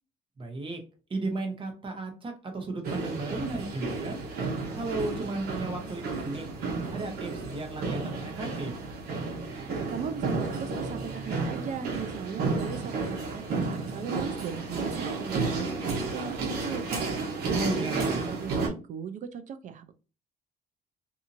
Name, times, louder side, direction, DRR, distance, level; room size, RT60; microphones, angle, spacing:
voice 1, 0.4-0.8 1.1-4.2 4.7-6.4 6.9-8.7 17.4-18.2, right 2 dB, 30° right, 1.0 m, -34 dB
sound 1, 2.8-18.7, right 3 dB, 65° right, 1.1 m, -32 dB
voice 2, 9.6-19.9, right 7 dB, 50° right, 0.5 m, -38 dB
2.7 x 2.6 x 2.5 m
cardioid pair, 110°, 17 cm